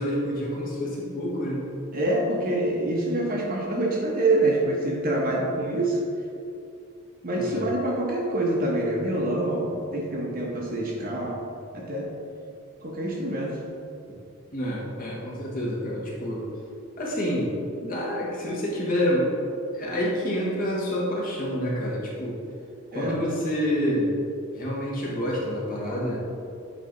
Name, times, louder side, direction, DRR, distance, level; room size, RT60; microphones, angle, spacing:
voice 1, 0.0-1.7 7.3-7.7 14.5-16.4 17.0-17.5 17.8-19.3 19.7-22.4 22.9-24.1 24.5-26.2, equal, 40° left, -5 dB, 1.3 m, -28 dB
voice 2, 1.9-6.0 7.2-11.4 11.7-12.1 12.8-13.6 22.9-23.2, right 1 dB, 40° right, -2 dB, 1.0 m, -26 dB
8.4 x 3.3 x 3.8 m, 2.5 s
head